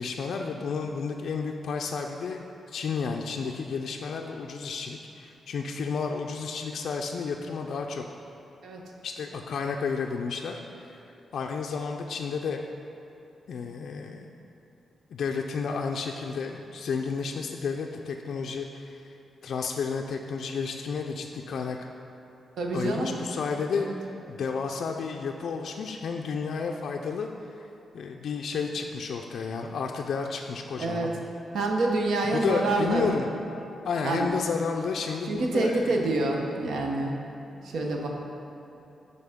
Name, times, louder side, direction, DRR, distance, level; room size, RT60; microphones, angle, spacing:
voice 1, 0.0-8.0 9.0-11.0 11.3-12.6 13.5-14.3 15.1-19.1 19.4-21.9 22.7-23.9 24.3-27.3 27.9-31.1 32.2-33.3 33.8-36.0, left 5 dB, 65° left, 2 dB, 0.3 m, -31 dB
voice 2, 22.6-23.1 23.8-23.9 30.8-31.1 31.5-33.1 34.0-34.3 35.3-37.2 37.5-38.1, right 2 dB, 80° right, 1 dB, 0.8 m, -27 dB
10.5 x 4.0 x 3.6 m, 3.0 s
wide cardioid pair, 155°, 0 cm